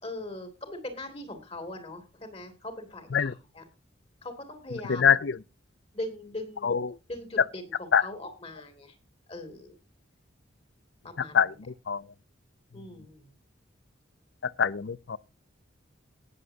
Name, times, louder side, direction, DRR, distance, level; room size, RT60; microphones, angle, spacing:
voice 1, 0.0-3.6 4.2-5.1 5.9-6.8 7.1-8.9 9.3-9.8 11.0-11.4 12.7-13.3, left 1 dB, 30° left, 2.7 m, -40 dB
voice 2, 4.9-5.4 6.6-7.0 7.9-8.0 11.3-11.5 11.9-12.0 14.4-15.2, left 7 dB, 65° left, 0.5 m, -24 dB
19.0 x 7.7 x 2.8 m
head